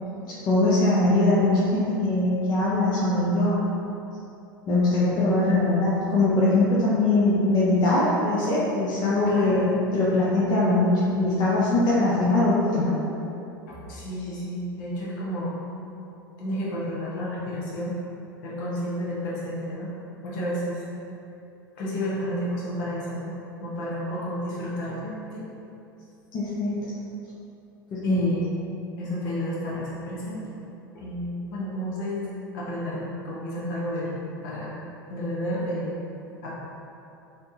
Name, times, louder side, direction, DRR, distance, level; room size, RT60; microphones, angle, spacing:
voice 1, 0.3-3.6 4.7-9.6 9.9-13.0 26.3-26.9 27.9-28.2, left 2 dB, 35° left, -8 dB, 0.6 m, -22 dB
voice 2, 9.3-9.7 13.7-15.6 16.4-17.9 18.4-19.9 20.2-20.8 21.7-23.3 23.6-25.5 28.0-28.6 29.0-30.4 30.9-32.3 32.5-34.7 35.1-36.0 36.4-36.5, equal, 60° left, -6 dB, 1.0 m, -31 dB
3.3 x 2.9 x 2.8 m, 2.8 s
figure-of-eight pair, 85°, 12 cm